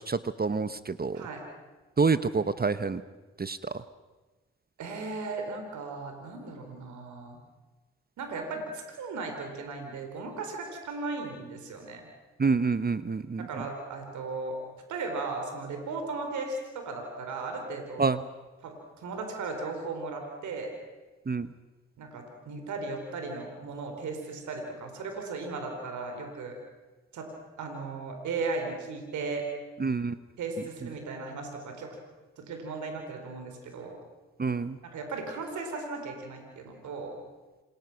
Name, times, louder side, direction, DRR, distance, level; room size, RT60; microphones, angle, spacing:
voice 1, 0.0-1.2 2.0-3.0 3.4-3.6 12.4-13.5 18.0-18.2 21.3-21.5 29.8-30.1 34.4-34.8, right 4 dB, 30° right, 14 dB, 1.1 m, -27 dB
voice 2, 4.8-7.4 8.2-12.0 13.4-14.6 14.9-18.1 18.6-20.7 22.0-26.6 27.1-27.3 27.6-29.5 30.4-31.9 32.4-34.0 34.8-37.2, right 3 dB, 75° right, 4 dB, 4.2 m, -36 dB
27.5 x 22.0 x 6.0 m, 1.2 s
hypercardioid pair, 40°, 30 cm